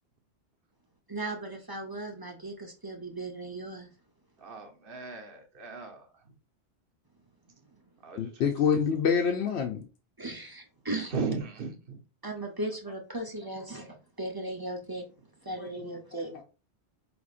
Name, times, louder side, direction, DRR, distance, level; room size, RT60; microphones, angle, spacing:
voice 1, 1.1-3.9 10.2-11.1 12.2-15.0 15.4-16.3, right 2 dB, 25° right, 3 dB, 0.5 m, -37 dB
voice 2, 4.4-6.3 8.0-8.5 11.1-12.0 15.7-15.8, right 5 dB, 55° right, 3 dB, 1.1 m, -37 dB
voice 3, 8.2-9.9 13.7-13.9 15.6-16.4, left 6 dB, 75° left, 2 dB, 0.9 m, -28 dB
4.9 x 3.4 x 2.4 m, 0.33 s
omnidirectional pair, 1.1 m